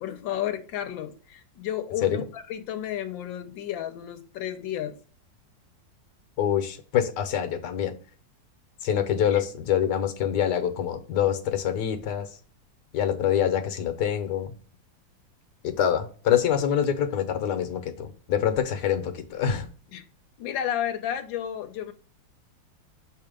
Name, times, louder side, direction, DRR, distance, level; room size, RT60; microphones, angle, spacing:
voice 1, 0.0-5.0 9.3-9.4 19.9-20.0 20.4-21.9, left 10 dB, 90° left, 1.4 m, -32 dB
voice 2, 6.4-7.9 8.8-12.3 12.9-14.5 15.6-19.7, left 9 dB, 70° left, 1.4 m, -25 dB
6.9 x 2.8 x 5.1 m
omnidirectional pair, 2.0 m